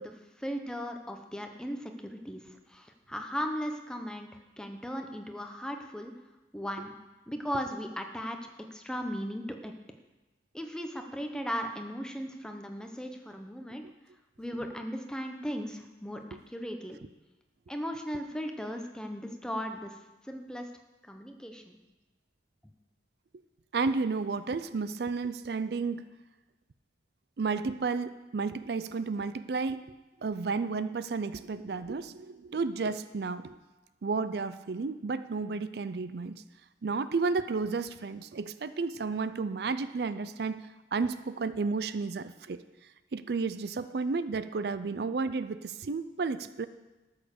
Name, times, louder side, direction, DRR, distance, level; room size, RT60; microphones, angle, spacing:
voice 1, 0.0-4.3 4.6-6.1 6.5-6.9 7.3-8.4 8.7-9.7 10.5-13.8 14.4-17.0 17.7-19.9 20.3-20.7 21.1-21.8, equal, 5° left, 4 dB, 0.8 m, -37 dB
voice 2, 23.7-26.0 27.4-29.8 30.2-33.6 34.0-36.4 36.8-42.6 43.1-46.7, right 4 dB, 60° right, 13 dB, 0.4 m, -32 dB
13.0 x 6.5 x 6.8 m, 1.1 s
head